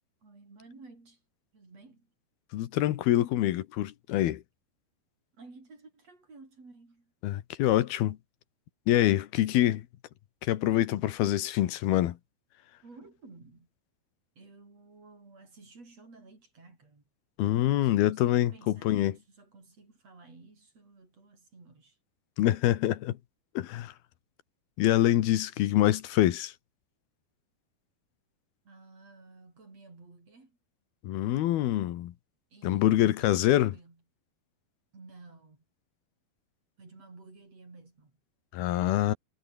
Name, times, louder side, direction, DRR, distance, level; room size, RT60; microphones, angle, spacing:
voice 1, 0.2-1.2 1.5-2.1 5.4-7.1 12.8-13.7 14.4-17.0 17.8-22.0 28.6-30.6 32.5-34.0 34.9-35.6 36.8-38.2, right 3 dB, 40° right, 7.6 m, -53 dB
voice 2, 2.5-4.4 7.2-8.2 8.9-9.8 10.5-12.2 17.4-18.5 18.8-19.1 22.4-23.2 23.6-23.9 24.8-26.5 31.0-32.1 32.6-33.7 38.5-39.1, left 13 dB, 85° left, 3.2 m, -25 dB
omnidirectional pair, 4.4 m